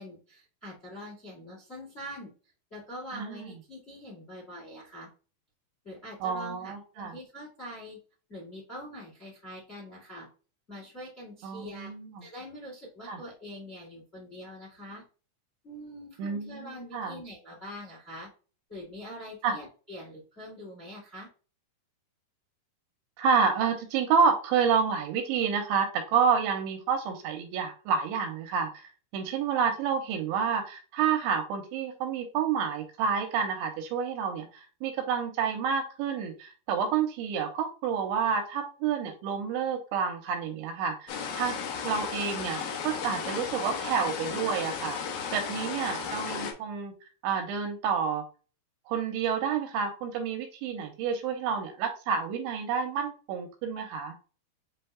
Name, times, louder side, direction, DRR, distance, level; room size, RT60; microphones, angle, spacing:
voice 1, 0.0-2.3 2.7-5.1 5.8-8.0 8.3-10.3 10.7-11.9 12.2-15.0 15.6-18.3 18.7-21.3, equal, 35° left, -3 dB, 1.0 m, -44 dB
voice 2, 6.2-7.2 11.4-12.2 13.1-13.2 16.2-16.7 16.9-17.2 19.4-19.6 23.2-28.8 29.1-34.5 34.8-41.6 41.8-45.0 45.3-46.9 47.2-48.2 48.9-54.1, right 6 dB, 85° right, 6 dB, 2.8 m, -29 dB
sound 1, 41.1-46.5, left 6 dB, 80° left, 2.2 m, -34 dB
7.9 x 2.9 x 2.2 m, 0.36 s
omnidirectional pair, 5.6 m